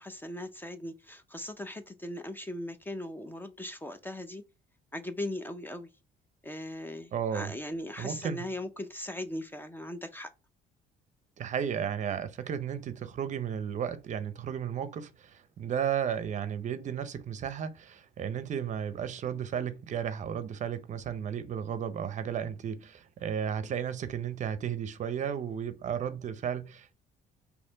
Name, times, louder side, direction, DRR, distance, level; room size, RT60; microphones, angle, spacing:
voice 1, 0.0-4.4 4.9-5.9 6.4-10.3, left 1 dB, 10° left, 0.5 m, -39 dB
voice 2, 7.1-7.5 8.0-8.5 11.4-27.0, right 8 dB, 45° right, 0.6 m, -34 dB
4.2 x 2.9 x 3.8 m
cardioid pair, 110°, 17 cm